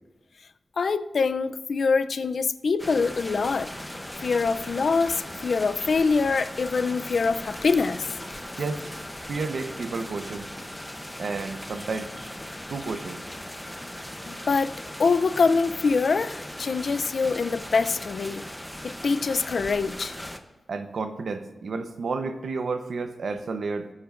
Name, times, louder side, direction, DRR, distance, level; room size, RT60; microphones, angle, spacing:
voice 1, 0.8-3.7 4.2-8.1 14.2-18.4 18.8-20.1, left 4 dB, 65° left, 0.4 m, -24 dB
sound 1, 2.8-20.4, left 1 dB, 5° left, 0.8 m, -38 dB
voice 2, 9.3-10.5 11.2-12.1 12.7-13.2 20.7-23.9, right 4 dB, 75° right, 0.8 m, -31 dB
19.0 x 8.6 x 2.5 m
wide cardioid pair, 115°, 0 cm